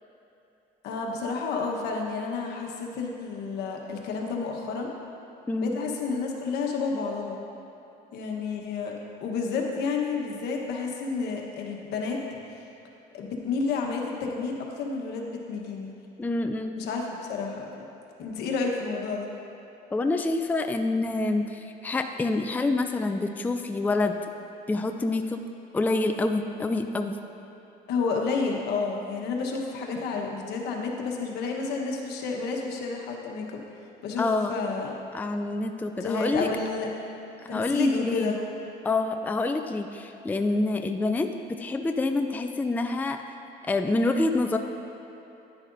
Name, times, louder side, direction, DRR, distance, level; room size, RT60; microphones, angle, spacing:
voice 1, 0.8-4.9 5.6-7.4 8.1-8.9 9.2-12.2 13.1-15.9 16.8-17.7 18.2-19.3 27.9-33.6 34.0-35.0 36.0-36.9 37.5-38.4, left 4 dB, 80° left, 0 dB, 1.2 m, -30 dB
voice 2, 5.5-5.8 16.2-16.8 19.9-24.2 24.7-25.4 25.7-27.2 34.2-34.5 35.1-36.5 37.4-38.3 38.8-41.3 41.6-43.2 43.6-44.6, left 2 dB, 10° left, 6 dB, 0.4 m, -27 dB
10.5 x 9.9 x 2.6 m, 2.9 s
cardioid pair, 110°, 17 cm